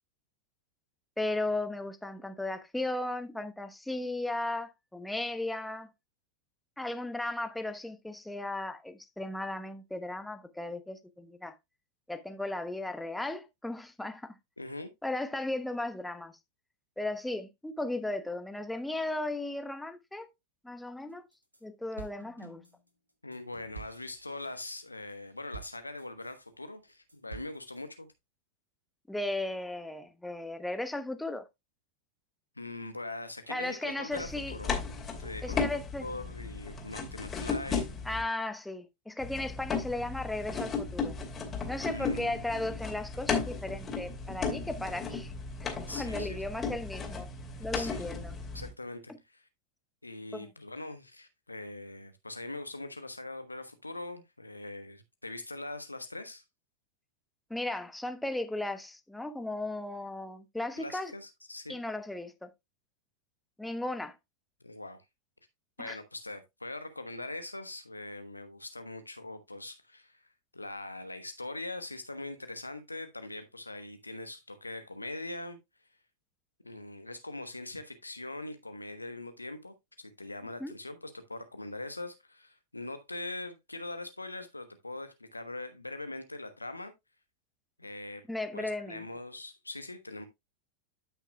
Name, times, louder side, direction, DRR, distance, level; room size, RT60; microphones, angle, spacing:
voice 1, 1.2-5.9 6.8-11.5 12.1-14.3 15.0-16.4 17.0-20.3 20.6-21.3 21.6-22.6 29.1-31.4 33.5-34.6 35.4-36.1 38.0-41.1 41.7-45.3 45.6-45.7 46.0-47.3 47.6-48.4 50.3-50.5 57.5-61.1 61.7-62.5 63.6-64.2 65.8-66.0 80.6-80.7 88.3-89.1, left 2 dB, 5° left, 1.0 m, -36 dB
voice 2, 14.6-14.9 23.2-28.1 32.5-34.7 35.2-35.7 36.0-37.9 41.9-42.4 45.9-46.4 47.7-48.0 48.5-49.5 50.0-56.4 60.8-61.8 64.6-65.0 65.8-75.6 76.6-86.9 87.8-88.2 88.5-90.3, left 2 dB, 85° left, 1.1 m, -42 dB
sound 1, 21.1-21.6 22.0-26.5 26.9-27.8, right 4 dB, 85° right, 1.3 m, -49 dB
sound 2, 34.1-38.2 39.2-48.7, left 5 dB, 20° left, 2.7 m, -35 dB
12.5 x 5.9 x 2.3 m
figure-of-eight pair, 90°, 0 cm